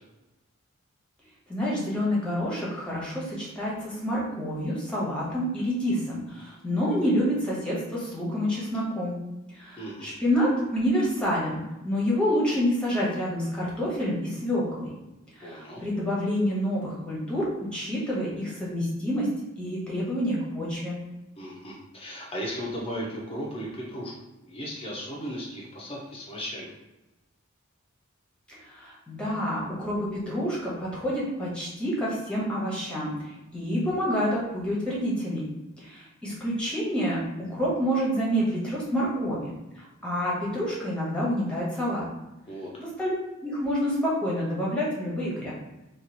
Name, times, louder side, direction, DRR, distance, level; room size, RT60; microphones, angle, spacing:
voice 1, 1.5-9.2 9.5-14.9 15.4-17.4 17.7-19.3 19.6-21.0 28.5-35.4 35.8-42.0 42.8-43.1 43.4-45.5, equal, 5° left, -6 dB, 1.1 m, -28 dB
voice 2, 9.8-10.1 15.4-15.8 21.4-24.1 24.4-26.7 42.5-42.7, equal, 30° left, -3 dB, 0.7 m, -36 dB
3.0 x 2.5 x 3.9 m, 1.0 s
head